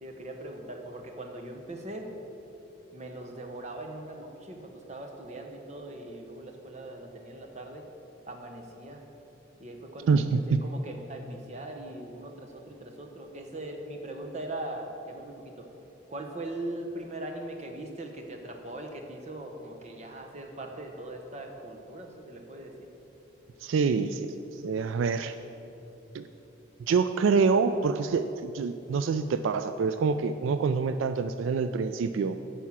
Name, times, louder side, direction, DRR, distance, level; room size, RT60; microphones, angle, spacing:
voice 1, 0.0-2.1 2.9-7.8 8.3-9.0 9.6-15.7 16.1-22.9, right 1 dB, 35° right, 3 dB, 1.0 m, -40 dB
voice 2, 10.1-10.6 23.6-25.3 26.1-26.2 26.9-32.4, right 5 dB, 80° right, 10 dB, 0.3 m, -26 dB
9.3 x 5.6 x 7.2 m, 2.9 s
head